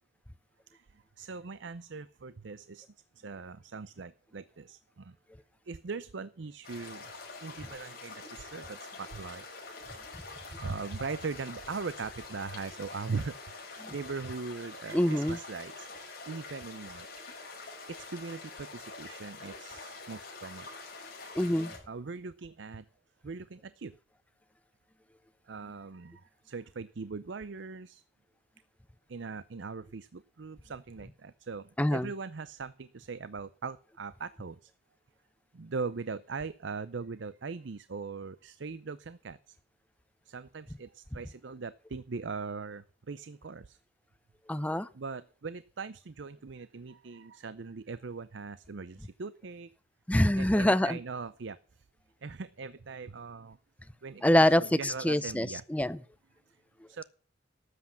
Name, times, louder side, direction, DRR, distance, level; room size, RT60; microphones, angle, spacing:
voice 1, 0.7-2.9 3.2-5.2 5.7-7.1 7.4-9.4 10.6-17.2 17.9-20.7 21.9-22.9 23.2-23.9 25.5-28.0 29.1-34.7 35.5-39.6 40.2-43.8 44.9-49.7 50.4-51.8 52.2-53.6 54.0-55.6 56.9-57.0, right 4 dB, 65° right, 16 dB, 0.6 m, -40 dB
sound 1, 6.6-21.8, left 3 dB, 50° left, 5.8 m, -46 dB
voice 2, 14.9-15.4 21.3-21.7 31.8-32.1 44.5-44.9 50.1-51.0 54.2-56.0, left 1 dB, 5° left, 15 dB, 0.5 m, -25 dB
13.0 x 8.3 x 5.8 m, 0.41 s
head